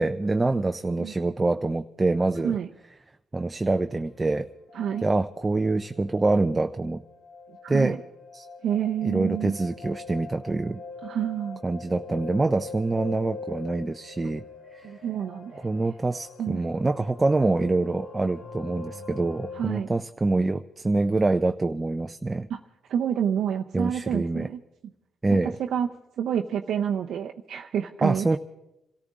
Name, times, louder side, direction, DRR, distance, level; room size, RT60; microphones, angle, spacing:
voice 1, 0.0-2.6 3.3-4.5 5.0-7.0 7.7-8.0 8.3-8.5 9.0-10.8 11.6-14.4 14.7-14.9 15.6-22.5 23.7-24.5 25.2-25.6 28.0-28.4, right 2 dB, 20° right, 7 dB, 0.5 m, -25 dB
sound 1, 4.1-4.2 4.7-5.3 5.6-19.6, left 4 dB, 70° left, 1.5 m, -43 dB
voice 2, 4.7-5.1 7.6-8.0 8.6-9.6 11.0-11.6 14.8-15.8 16.4-16.6 19.5-19.9 22.5-22.6 22.9-24.6 25.3-25.9 26.2-28.4, right 9 dB, 70° right, 2 dB, 0.7 m, -28 dB
26.5 x 14.0 x 3.7 m, 0.91 s
cardioid pair, 90°, 0 cm